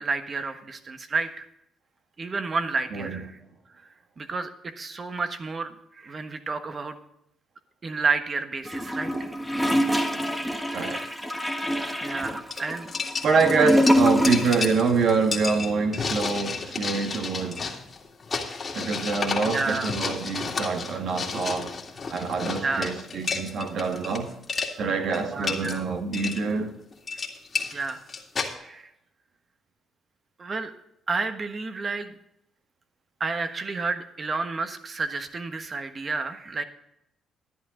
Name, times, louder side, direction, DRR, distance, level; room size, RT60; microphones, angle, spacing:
voice 1, 0.0-1.5 2.2-3.4 4.2-7.0 7.8-9.3 10.9-11.2 11.8-12.9 13.5-13.8 18.4-18.8 19.5-19.9 22.5-22.9 25.3-25.8 27.7-28.0 28.6-28.9 30.4-30.7 31.1-32.2 33.2-36.6, right 4 dB, 40° right, 1.3 m, -31 dB
voice 2, 2.9-3.2 10.7-11.0 13.2-17.8 18.7-21.7 22.1-24.3 24.8-26.7, right 4 dB, 65° right, 1.7 m, -25 dB
Gurgling / Toilet flush, 8.7-14.7 15.0-15.1, equal, 5° right, 1.5 m, -25 dB
sound 1, 12.1-12.2 12.5-24.2 24.4-24.7 25.1-25.8 26.1-26.4 26.9-28.5, left 4 dB, 35° left, 2.2 m, -31 dB
12.0 x 10.5 x 3.8 m
cardioid pair, 90°, 0 cm